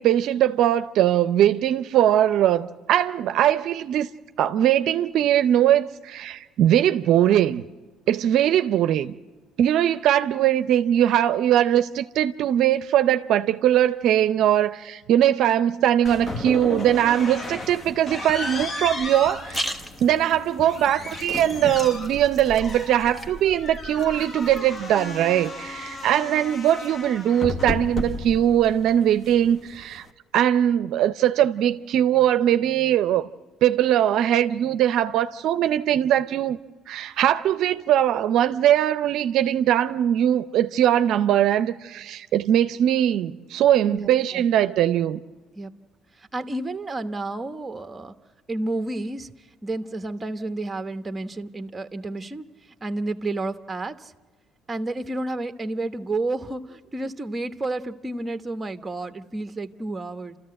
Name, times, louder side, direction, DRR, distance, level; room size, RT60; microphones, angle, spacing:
voice 1, 0.0-4.1 4.4-7.7 8.1-9.2 9.6-19.7 20.0-30.1 30.3-33.3 33.6-36.6 36.9-45.2, right 11 dB, 65° right, 0.6 m, -21 dB
sound 1, 16.0-30.1, left 2 dB, 35° left, 1.2 m, -34 dB
sound 2, 19.2-25.3, equal, 15° left, 1.5 m, -39 dB
voice 2, 43.9-44.4 45.5-45.7 46.2-48.1 48.5-49.3 49.6-52.5 52.8-54.1 54.7-60.4, right 2 dB, 20° right, 1.1 m, -31 dB
29.0 x 14.0 x 7.7 m
supercardioid pair, 90°, 0 cm